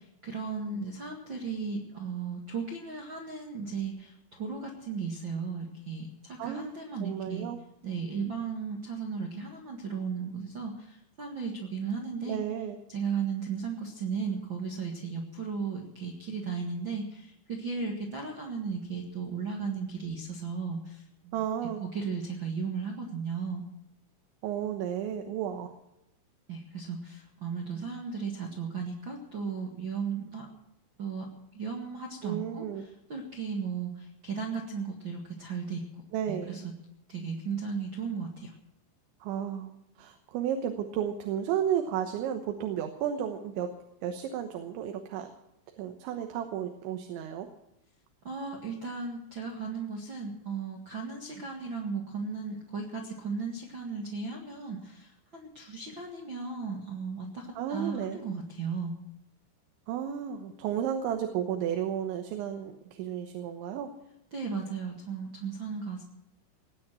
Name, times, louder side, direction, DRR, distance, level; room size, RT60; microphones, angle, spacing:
voice 1, 0.2-7.5 7.8-12.4 12.9-21.4 21.8-23.6 26.5-30.5 31.0-31.3 31.5-36.0 36.3-36.6 37.1-38.5 48.2-58.9 64.3-66.0, right 5 dB, 60° right, 1 dB, 1.2 m, -35 dB
voice 2, 6.4-6.7 7.0-7.6 12.3-12.8 21.3-21.8 24.4-25.7 32.2-32.9 36.1-36.6 39.2-43.7 44.0-45.3 45.8-47.5 57.6-58.2 59.9-63.9, right 9 dB, 80° right, 5 dB, 3.4 m, -33 dB
19.0 x 9.4 x 7.5 m, 0.85 s
omnidirectional pair, 5.4 m